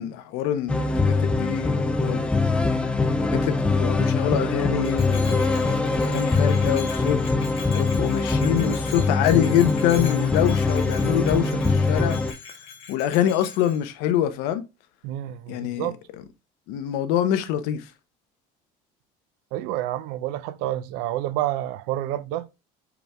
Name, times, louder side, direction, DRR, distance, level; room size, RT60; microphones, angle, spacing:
voice 1, 0.0-2.8 3.3-7.2 7.7-12.2 12.9-14.6 15.5-15.9 16.7-17.8, left 10 dB, 75° left, 0.7 m, -25 dB
sound 1, 0.7-12.3, left 3 dB, 5° left, 0.3 m, -23 dB
Bell, 4.8-13.8, left 6 dB, 35° left, 1.6 m, -41 dB
voice 2, 15.0-16.0 19.5-22.5, right 13 dB, 85° right, 0.4 m, -29 dB
5.0 x 4.9 x 2.2 m
cardioid pair, 180°, 16 cm